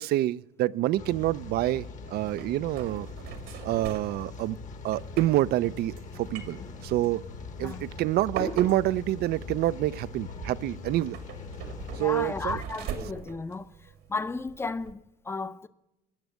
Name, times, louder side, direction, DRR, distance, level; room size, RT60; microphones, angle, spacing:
voice 1, 0.0-3.1 3.6-4.6 4.8-7.2 7.6-11.2 12.0-12.6, right 15 dB, 70° right, 0.4 m, -27 dB
Rain, 1.0-12.6, left 5 dB, 50° left, 1.2 m, -42 dB
sound 1, 1.3-14.9, right 6 dB, 85° right, 2.1 m, -42 dB
voice 2, 12.0-15.7, left 3 dB, 15° left, 0.5 m, -34 dB
17.5 x 6.3 x 7.9 m
cardioid pair, 110°, 17 cm